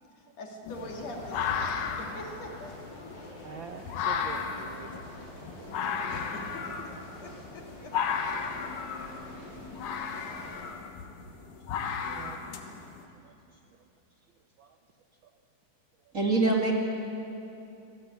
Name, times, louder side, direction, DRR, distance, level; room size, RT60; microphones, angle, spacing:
voice 1, 0.2-2.7 6.1-6.7 7.2-8.0 8.2-8.7 12.0-12.7, left 1 dB, 60° left, 2 dB, 3.4 m, -44 dB
sound 1, 0.6-13.0, left 6 dB, 80° left, 2.9 m, -35 dB
sound 2, 0.7-10.6, left 1 dB, 35° left, 4.6 m, -47 dB
voice 2, 3.2-6.1 8.6-8.7 10.4-10.9 12.1-12.4 12.7-12.8 13.2-13.9 14.3-14.8 15.2-15.4 16.0-16.1, right 6 dB, 80° right, 6 dB, 1.1 m, -48 dB
voice 3, 16.1-16.7, right 3 dB, 25° right, 0 dB, 2.4 m, -24 dB
25.5 x 18.0 x 8.5 m, 2.8 s
omnidirectional pair, 3.5 m